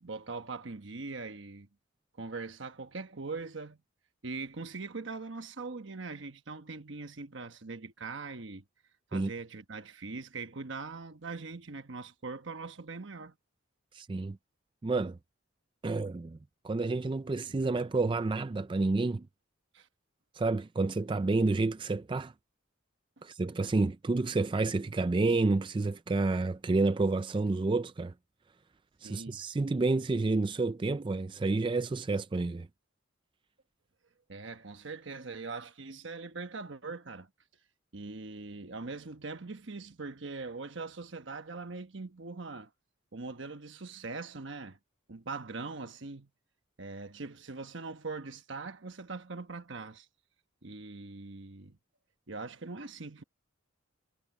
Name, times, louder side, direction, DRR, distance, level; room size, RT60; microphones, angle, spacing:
voice 1, 0.0-1.7 2.2-3.8 4.2-8.6 9.1-13.3 19.7-19.9 29.0-29.4 34.3-37.3 37.9-42.7 43.1-44.8 45.1-46.3 46.8-50.1 50.6-51.8 52.3-53.2, right 3 dB, 60° right, 1.2 m, -41 dB
voice 2, 13.9-14.4 14.8-15.2 15.8-16.4 16.6-19.2 20.4-22.3 23.2-28.1 29.0-32.7, right 3 dB, 25° right, 0.3 m, -29 dB
head